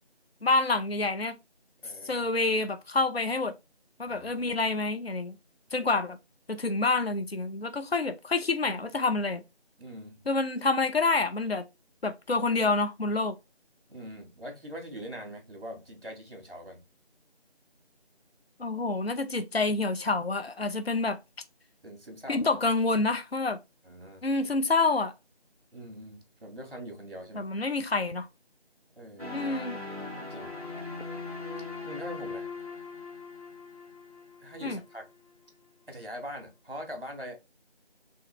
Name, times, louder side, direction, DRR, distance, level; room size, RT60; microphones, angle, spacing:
voice 1, 0.4-1.3 2.0-3.5 4.0-5.3 5.7-6.2 6.5-9.4 10.3-11.7 12.0-13.3 18.6-21.2 22.3-23.6 24.2-25.1 27.3-28.3 29.3-29.8 34.6-34.8, left 3 dB, 65° left, 0.7 m, -27 dB
voice 2, 1.8-2.3 4.0-4.5 9.8-10.2 13.9-16.8 21.8-22.5 23.8-24.3 25.7-27.5 29.0-29.4 30.1-30.5 31.8-32.5 34.4-35.1 35.9-37.4, equal, 55° right, 1.9 m, -42 dB
sound 1, 29.2-35.1, left 3 dB, 35° right, 1.4 m, -40 dB
4.6 x 3.3 x 3.2 m
figure-of-eight pair, 175°, 33 cm